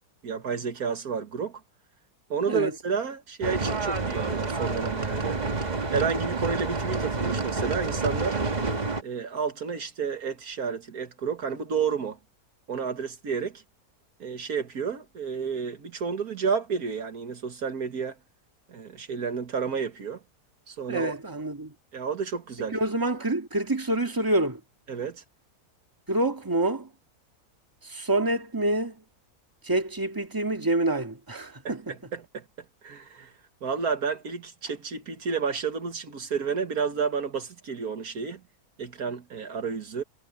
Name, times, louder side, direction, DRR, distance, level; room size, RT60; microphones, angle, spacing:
voice 1, 0.2-1.6 2.3-5.4 5.9-8.4 9.0-12.2 12.7-13.6 14.2-18.2 18.7-20.2 20.7-21.1 21.9-22.8 24.9-25.2 31.6-32.5 32.8-33.3 33.6-38.4 38.8-40.0, right 6 dB, 70° right, 2.0 m, -31 dB
sound 1, 3.4-9.0, right 3 dB, 30° right, 1.4 m, -28 dB
voice 2, 20.9-21.7 22.7-24.6 26.1-26.9 27.9-28.9 29.6-31.8, right 2 dB, 15° right, 2.0 m, -27 dB
omnidirectional pair, 1.6 m